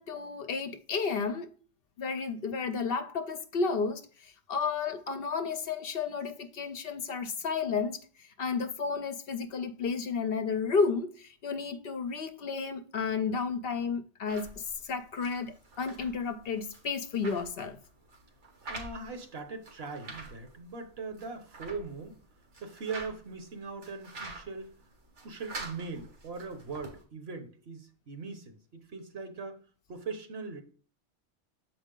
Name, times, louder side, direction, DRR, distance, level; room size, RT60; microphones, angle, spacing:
voice 1, 0.0-1.5 2.0-8.0 8.4-17.8, left 5 dB, 60° left, 0.7 m, -32 dB
sound 1, 14.3-27.0, right 2 dB, 85° right, 1.7 m, -47 dB
voice 2, 18.6-22.2 22.6-24.8 25.2-29.6 29.9-30.6, right 4 dB, 65° right, 1.2 m, -40 dB
7.2 x 4.6 x 3.8 m
omnidirectional pair, 1.2 m